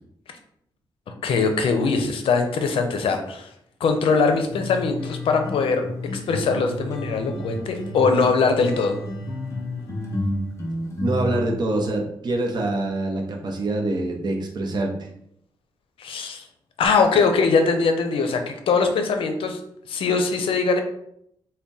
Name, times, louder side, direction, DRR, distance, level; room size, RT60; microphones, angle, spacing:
voice 1, 1.2-3.5 3.8-9.0 16.0-16.5 16.8-19.6 19.9-20.8, left 4 dB, 85° left, 6 dB, 0.5 m, -21 dB
sound 1, 4.5-11.4, left 1 dB, 35° left, 0.7 m, -31 dB
voice 2, 11.0-14.9, right 2 dB, 50° right, 2 dB, 0.7 m, -25 dB
3.5 x 2.2 x 3.9 m, 0.73 s
wide cardioid pair, 120°, 9 cm